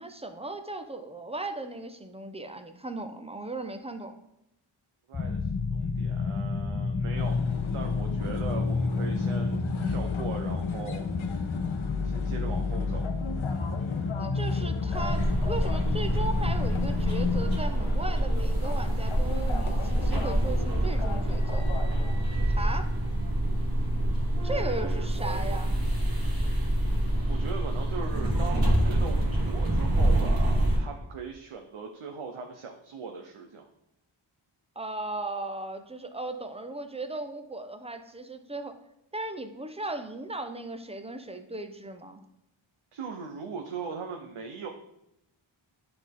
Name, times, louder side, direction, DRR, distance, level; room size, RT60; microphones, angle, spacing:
voice 1, 0.0-4.1 14.2-21.7 22.5-22.9 24.4-25.7 34.8-38.7 39.1-42.2, right 2 dB, 10° right, 7 dB, 0.7 m, -37 dB
sound 1, 5.1-17.6, left 4 dB, 25° left, 0.4 m, -30 dB
voice 2, 5.1-7.4 7.7-11.0 12.0-13.1 24.4-25.6 27.3-33.6 42.9-44.7, right 5 dB, 80° right, 3 dB, 0.8 m, -39 dB
sound 2, 7.2-22.1, left 5 dB, 70° left, 0.9 m, -40 dB
sound 3, 14.9-30.8, right 1 dB, 45° right, 1.8 m, -26 dB
9.7 x 3.9 x 3.6 m, 0.82 s
wide cardioid pair, 50°, 49 cm